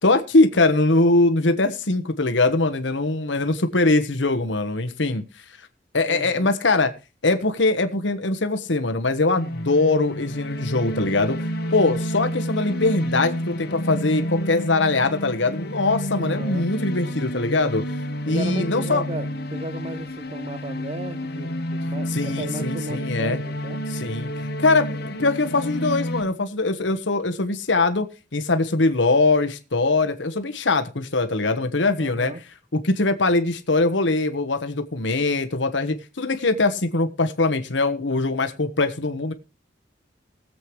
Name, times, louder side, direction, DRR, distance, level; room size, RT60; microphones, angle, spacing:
voice 1, 0.0-5.2 5.9-6.9 7.2-17.8 18.3-19.0 22.1-23.4 23.9-32.3 32.7-39.3, left 3 dB, 80° left, 1.3 m, -22 dB
voice 2, 6.1-6.5 16.2-16.7 18.3-23.8 32.0-32.4, right 2 dB, 35° right, 0.6 m, -35 dB
sound 1, 9.3-26.2, equal, 60° left, 1.5 m, -30 dB
20.5 x 7.8 x 3.2 m
head